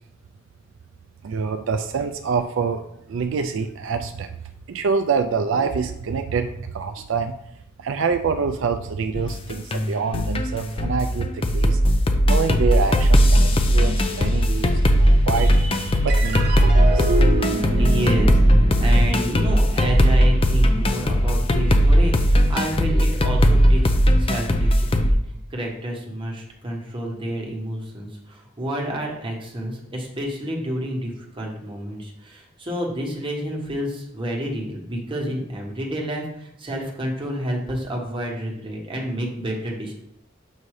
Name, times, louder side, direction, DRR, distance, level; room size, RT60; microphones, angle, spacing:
voice 1, 1.2-2.8 3.1-4.3 4.7-7.3 7.8-11.8 12.2-17.4, right 5 dB, 75° right, 8 dB, 0.4 m, -26 dB
sound 1, 9.1-25.1, equal, 30° left, 0.5 m, -18 dB
sound 2, 16.1-22.8, right 2 dB, 55° right, 1.0 m, -29 dB
voice 2, 17.8-39.9, equal, 25° right, -1 dB, 1.2 m, -29 dB
7.3 x 2.7 x 4.8 m, 0.77 s
head